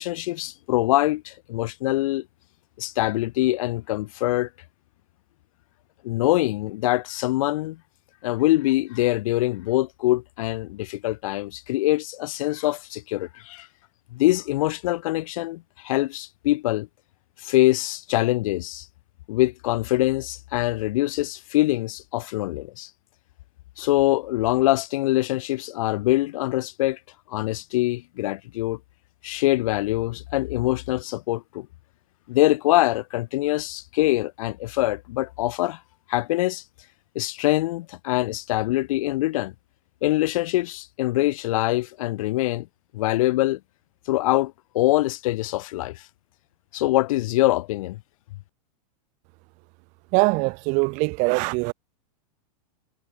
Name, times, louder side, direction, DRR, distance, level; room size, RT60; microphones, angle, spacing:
voice 1, 0.0-2.2 2.8-4.5 6.0-7.8 8.2-13.7 14.1-16.9 17.4-18.9 19.3-22.9 23.8-27.0 27.3-28.8 29.2-31.7 32.3-35.8 36.1-36.6 37.1-39.5 40.0-42.7 42.9-43.6 44.1-46.0 46.7-48.0, left 17 dB, 55° left, 1.1 m, -24 dB
voice 2, 50.1-51.7, right 30 dB, 35° right, 2.0 m, -22 dB
supercardioid pair, 160°, 20 cm